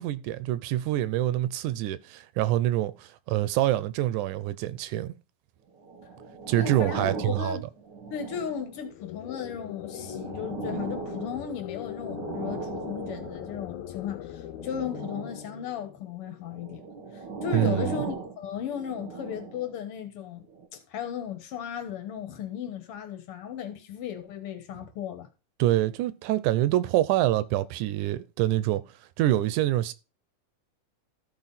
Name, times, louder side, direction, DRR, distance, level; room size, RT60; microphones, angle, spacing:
voice 1, 0.0-5.1 6.5-7.6 17.5-18.0 25.6-28.8 29.2-29.9, right 14 dB, 85° right, 2.1 m, -26 dB
sound 1, 5.8-8.9 9.5-13.8 14.5-15.6 16.5-19.8 20.5-20.7, right 4 dB, 50° right, 1.3 m, -38 dB
voice 2, 6.6-7.7 8.1-16.8 17.4-20.5 20.7-25.3, left 8 dB, 55° left, 2.0 m, -35 dB
sound 2, 8.8-16.4, left 12 dB, 80° left, 2.1 m, -41 dB
13.5 x 4.8 x 4.1 m
omnidirectional pair, 3.5 m